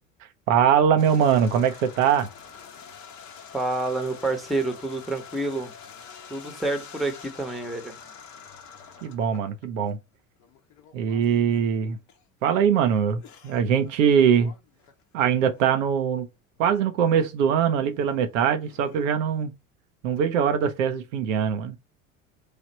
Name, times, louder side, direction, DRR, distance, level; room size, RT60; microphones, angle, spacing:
voice 1, 0.5-2.3 9.0-10.0 10.9-12.0 12.4-14.5 15.1-16.3 16.6-19.5 20.0-21.8, right 8 dB, 65° right, 0.7 m, -22 dB
sound 1, 1.0-9.9 10.4-11.6 12.1-12.2 13.1-16.0 16.6-17.2 17.5-19.1, left 7 dB, 45° left, 0.9 m, -47 dB
voice 2, 3.5-5.7 6.3-8.0, right 2 dB, ahead, 1.0 m, -28 dB
3.2 x 2.4 x 4.1 m
figure-of-eight pair, 70°, 41 cm